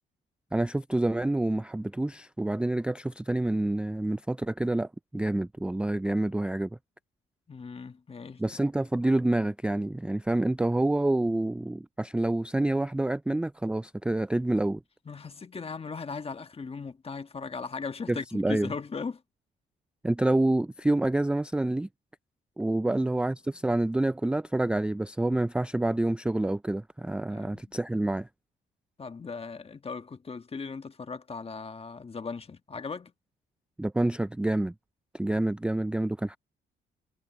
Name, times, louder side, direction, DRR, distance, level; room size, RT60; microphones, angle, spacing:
voice 1, 0.5-6.7 8.4-14.8 18.1-18.7 20.0-21.9 22.6-28.3 33.8-34.7 35.1-36.4, right 1 dB, 5° right, 0.4 m, -27 dB
voice 2, 7.5-8.4 15.0-19.2 22.8-23.1 27.3-27.7 29.0-33.1, left 4 dB, 30° left, 1.4 m, -38 dB
cardioid pair, 90°, 20 cm